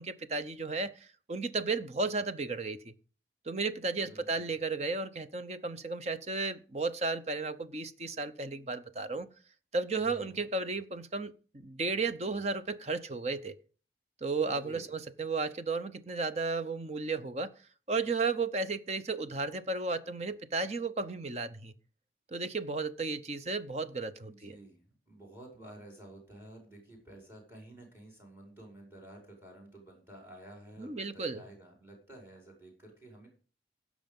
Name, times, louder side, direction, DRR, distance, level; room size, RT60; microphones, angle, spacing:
voice 1, 0.0-2.9 3.5-9.3 9.7-13.6 14.2-17.5 17.9-21.7 22.3-24.6 30.8-31.4, right 3 dB, 40° right, 0.7 m, -34 dB
voice 2, 4.0-4.5 10.0-10.4 14.5-14.9 24.2-33.3, right 1 dB, 15° right, 5.2 m, -52 dB
16.0 x 6.3 x 5.4 m
head